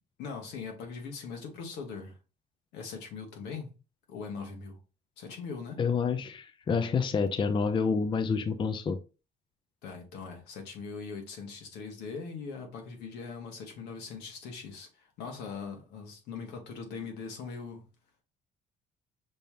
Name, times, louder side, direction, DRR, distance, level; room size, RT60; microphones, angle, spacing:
voice 1, 0.2-2.1 2.7-3.7 4.1-4.8 5.2-5.8 9.8-17.9, left 5 dB, 85° left, 1.5 m, -41 dB
voice 2, 5.8-9.0, left 5 dB, 30° left, 0.5 m, -28 dB
5.5 x 3.4 x 2.8 m
cardioid pair, 110°, 17 cm